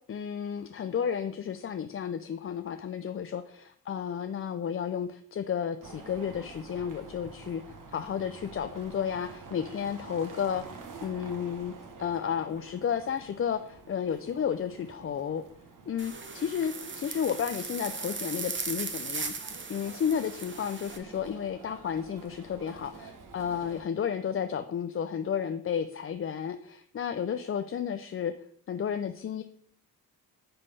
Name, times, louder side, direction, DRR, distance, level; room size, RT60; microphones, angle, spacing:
voice 1, 0.1-11.7 12.0-15.4 15.9-28.3 28.7-29.4, left 8 dB, 35° left, 9 dB, 0.4 m, -32 dB
sound 1, 5.8-23.8, right 4 dB, 50° right, 1.3 m, -48 dB
sound 2, 16.0-21.0, right 4 dB, 30° right, 0.9 m, -38 dB
9.7 x 3.5 x 4.2 m, 0.62 s
cardioid pair, 60°, 40 cm